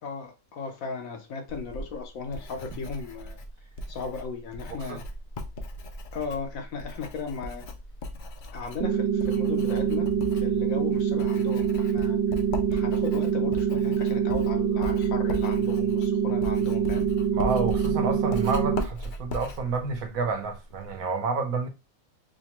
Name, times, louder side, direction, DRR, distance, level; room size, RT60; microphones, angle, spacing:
voice 1, 0.0-3.4 3.9-5.0 6.1-7.6 8.5-10.1 10.3-12.2 12.7-17.1, left 5 dB, 75° left, 1.2 m, -36 dB
Writing, 1.5-21.0, left 1 dB, 60° left, 0.5 m, -38 dB
voice 2, 4.7-5.0 17.3-21.7, right 4 dB, 80° right, 1.1 m, -29 dB
sound 1, 8.8-18.8, right 8 dB, 65° right, 0.6 m, -25 dB
4.8 x 2.2 x 2.9 m
omnidirectional pair, 1.4 m